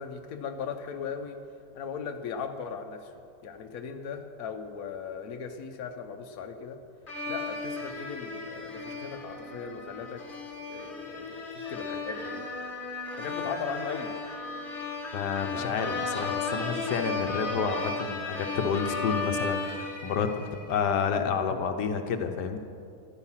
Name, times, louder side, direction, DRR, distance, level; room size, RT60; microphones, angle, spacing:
voice 1, 0.0-1.4 1.7-3.1 3.4-6.8 7.3-10.2 10.7-12.4 13.2-14.2 15.4-15.8, left 6 dB, 65° left, 5 dB, 1.3 m, -38 dB
sound 1, 7.1-20.8, left 3 dB, 30° left, 1.9 m, -35 dB
voice 2, 15.1-22.6, left 6 dB, 85° left, 6 dB, 1.5 m, -30 dB
14.5 x 13.0 x 5.8 m, 2.4 s
omnidirectional pair, 1.8 m